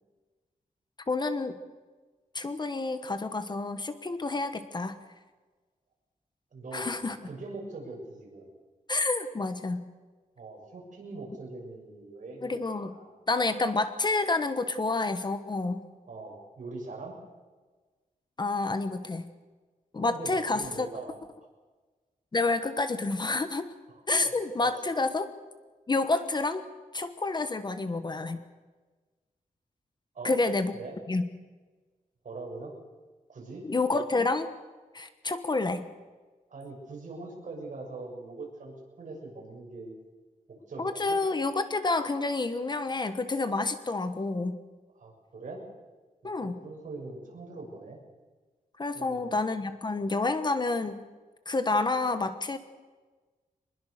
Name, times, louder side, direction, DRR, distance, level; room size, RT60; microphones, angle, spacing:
voice 1, 1.1-1.6 2.3-5.0 6.7-7.2 8.9-9.9 12.4-13.0 13.3-15.8 18.4-19.2 19.9-20.9 22.3-23.7 24.1-25.3 25.9-26.6 26.9-28.4 30.2-30.7 31.1-31.3 33.6-34.5 34.9-35.8 40.8-44.6 46.2-46.6 48.8-51.0 51.5-52.6, left 3 dB, 30° left, 10 dB, 1.2 m, -29 dB
voice 2, 6.5-6.9 7.2-8.5 10.4-13.1 16.1-17.2 20.0-21.2 23.9-24.3 24.6-24.7 30.1-30.4 30.7-31.0 32.2-32.7 33.3-33.7 36.5-39.9 40.5-41.2 45.0-45.6 46.4-48.0 48.9-49.4 50.0-50.1, right 3 dB, 60° right, -1 dB, 7.2 m, -42 dB
24.5 x 21.0 x 6.7 m, 1.3 s
wide cardioid pair, 170°, 15 cm